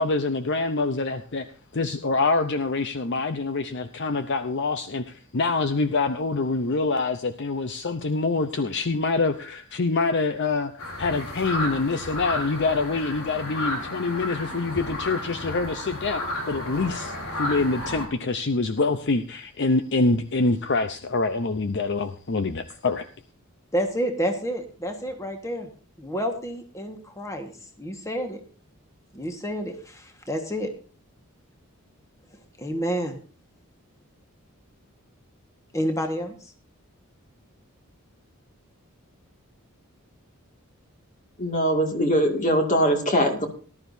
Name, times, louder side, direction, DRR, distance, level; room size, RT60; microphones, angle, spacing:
voice 1, 0.0-1.5 1.7-10.7 11.0-23.1, left 3 dB, 50° left, 9 dB, 0.7 m, -25 dB
sound 1, 10.8-18.1, left 1 dB, 75° left, 3.9 m, -32 dB
voice 2, 23.7-25.7 26.0-28.4 29.1-30.7 32.3-33.2 35.7-36.5, equal, 15° left, 4 dB, 1.5 m, -29 dB
voice 3, 41.4-43.5, equal, 35° left, 3 dB, 2.2 m, -22 dB
18.5 x 12.0 x 2.7 m, 0.40 s
head